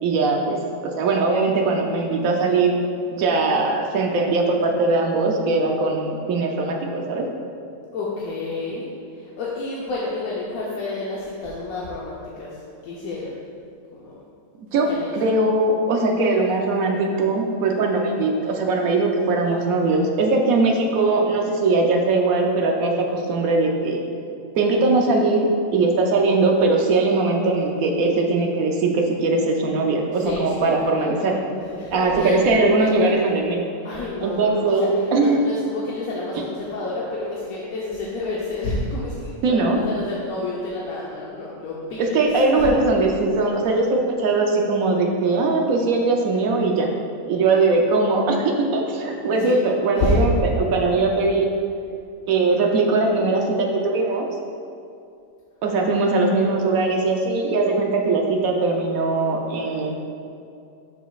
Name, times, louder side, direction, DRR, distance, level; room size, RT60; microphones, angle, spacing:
voice 1, 0.0-2.8 3.1-7.2 14.6-14.9 15.1-24.0 24.6-31.3 31.9-33.6 34.2-35.4 39.4-39.8 42.0-46.9 47.3-51.5 52.3-54.3 55.6-60.0, right 3 dB, 85° right, 1 dB, 1.2 m, -20 dB
voice 2, 7.9-8.9 9.1-13.3 13.9-14.2 14.7-15.1 30.1-33.2 33.8-42.2 42.5-43.0 49.4-50.2 56.2-56.7, left 2 dB, 90° left, -5 dB, 1.3 m, -30 dB
12.0 x 5.0 x 2.4 m, 2.5 s
omnidirectional pair, 1.4 m